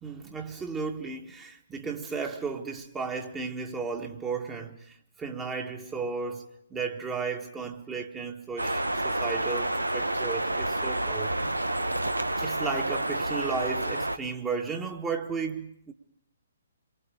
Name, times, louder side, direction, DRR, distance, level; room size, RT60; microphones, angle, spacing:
voice 1, 0.0-11.6 12.4-15.9, right 5 dB, 15° right, 1.7 m, -34 dB
sound 1, 8.6-14.2, right 1 dB, 80° right, 1.2 m, -29 dB
27.5 x 23.5 x 5.1 m
figure-of-eight pair, 130°, 0 cm